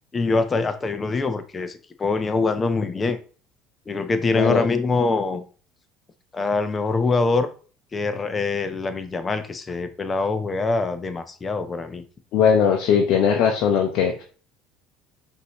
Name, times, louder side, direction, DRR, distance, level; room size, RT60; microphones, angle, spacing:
voice 1, 0.1-3.2 3.9-5.4 6.3-7.5 7.9-12.0, left 3 dB, 25° left, 9 dB, 0.7 m, -24 dB
voice 2, 12.3-14.2, left 7 dB, 65° left, 2 dB, 0.7 m, -19 dB
5.3 x 2.7 x 3.0 m, 0.39 s
supercardioid pair, 85°, 0 cm